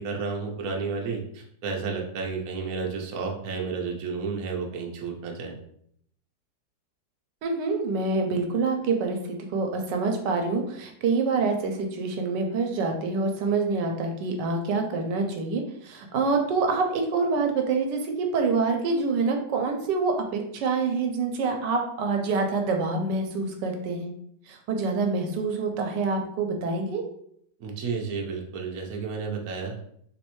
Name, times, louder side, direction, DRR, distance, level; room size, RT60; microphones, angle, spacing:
voice 1, 0.0-5.6 27.6-29.8, right 4 dB, 65° right, 0 dB, 1.0 m, -32 dB
voice 2, 7.4-24.1 24.5-27.0, right 4 dB, 85° right, 3 dB, 1.3 m, -26 dB
3.2 x 3.1 x 3.0 m, 0.69 s
omnidirectional pair, 1.8 m